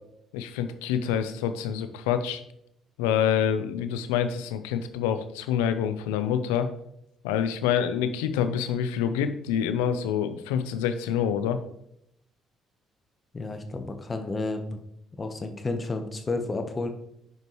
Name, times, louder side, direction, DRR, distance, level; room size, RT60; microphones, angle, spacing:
voice 1, 0.3-2.4 3.0-6.7 7.2-11.6, left 8 dB, 85° left, 10 dB, 0.5 m, -26 dB
voice 2, 13.3-14.8 15.2-16.9, left 3 dB, 35° left, 6 dB, 1.1 m, -31 dB
9.5 x 5.2 x 3.1 m, 0.75 s
hypercardioid pair, 55°, 0 cm